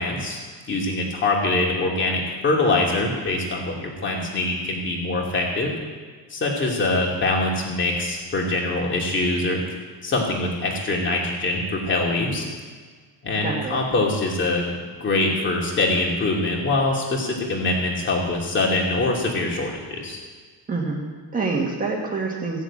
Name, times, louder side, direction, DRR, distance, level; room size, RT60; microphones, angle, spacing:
voice 1, 0.0-5.7 6.3-9.6 10.0-12.5 13.2-20.2, left 2 dB, 25° left, -1 dB, 2.6 m, -24 dB
voice 2, 13.4-13.8 20.7-22.6, right 3 dB, 15° right, -1 dB, 1.7 m, -27 dB
16.0 x 7.1 x 8.6 m, 1.5 s
cardioid pair, 175°, 47 cm